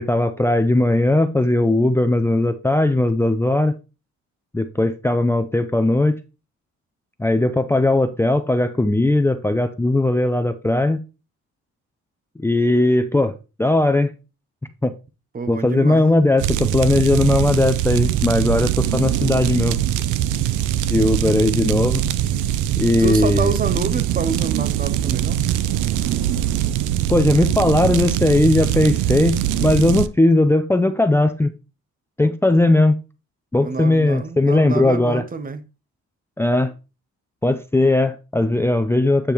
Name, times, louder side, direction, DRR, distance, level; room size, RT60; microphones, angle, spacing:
voice 1, 0.0-3.8 4.5-6.2 7.2-11.0 12.4-13.3 13.6-14.1 14.8-14.9 15.5-19.8 20.9-22.0 22.8-23.5 27.1-31.5 32.2-33.0 33.5-35.2 36.4-36.7 37.4-39.3, left 2 dB, 10° left, 0.5 m, -18 dB
voice 2, 15.3-16.0 20.0-20.1 23.0-25.5 33.6-35.6, right 5 dB, 30° right, 0.7 m, -27 dB
sound 1, 16.4-30.1, right 11 dB, 80° right, 0.5 m, -22 dB
8.5 x 5.1 x 3.0 m
cardioid pair, 90°, 30 cm